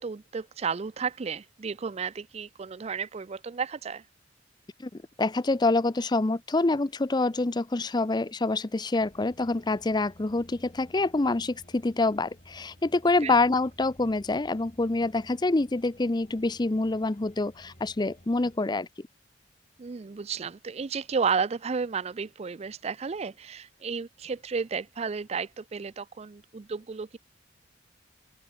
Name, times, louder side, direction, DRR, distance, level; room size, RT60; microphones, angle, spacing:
voice 1, 0.0-4.0 13.2-13.3 19.8-27.2, right 5 dB, 35° right, 0.4 m, -32 dB
voice 2, 4.8-19.1, left 2 dB, 25° left, 0.6 m, -26 dB
sound 1, 9.0-18.6, equal, 40° left, 6.4 m, -55 dB
open air
head